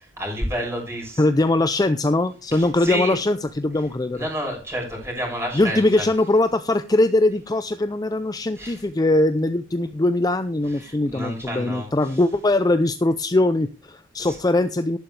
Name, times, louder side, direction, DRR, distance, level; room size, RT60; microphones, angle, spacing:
voice 1, 0.0-1.2 2.5-3.1 4.1-6.0 8.5-8.8 10.6-12.2 14.2-14.4, equal, 15° right, 0 dB, 6.8 m, -30 dB
voice 2, 1.2-4.3 5.5-15.0, left 2 dB, 20° left, 11 dB, 0.5 m, -21 dB
13.0 x 11.5 x 3.3 m, 0.33 s
head